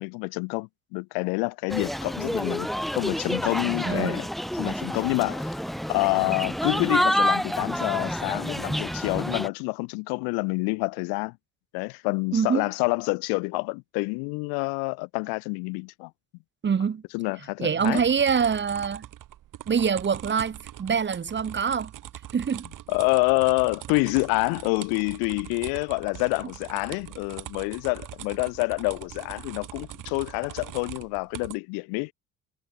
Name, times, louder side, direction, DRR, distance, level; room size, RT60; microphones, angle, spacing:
voice 1, 0.0-4.3 4.5-5.6 5.9-11.3 11.7-16.1 17.1-18.0 22.9-32.1, left 34 dB, 65° left, 0.6 m, -27 dB
sound 1, 1.7-9.5, equal, ahead, 1.7 m, -28 dB
voice 2, 3.8-4.2 12.3-12.6 16.6-17.0 17.6-19.0 19.7-21.9 22.3-22.7, right 6 dB, 30° right, 1.2 m, -25 dB
sound 2, 17.8-31.6, right 13 dB, 50° right, 1.7 m, -42 dB
hypercardioid pair, 55°, 40 cm